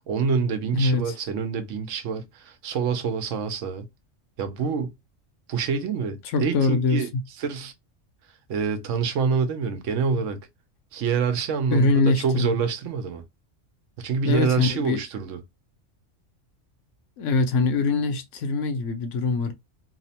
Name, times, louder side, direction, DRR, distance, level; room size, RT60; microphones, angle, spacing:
voice 1, 0.1-3.8 4.4-4.9 5.5-7.1 7.4-7.7 8.5-10.4 10.9-13.2 14.0-15.4, right 5 dB, 75° right, 1.0 m, -26 dB
voice 2, 0.7-1.1 6.3-7.2 11.7-12.6 14.2-15.0 17.2-19.5, left 3 dB, 80° left, 1.0 m, -23 dB
2.8 x 2.0 x 2.8 m
omnidirectional pair, 1.3 m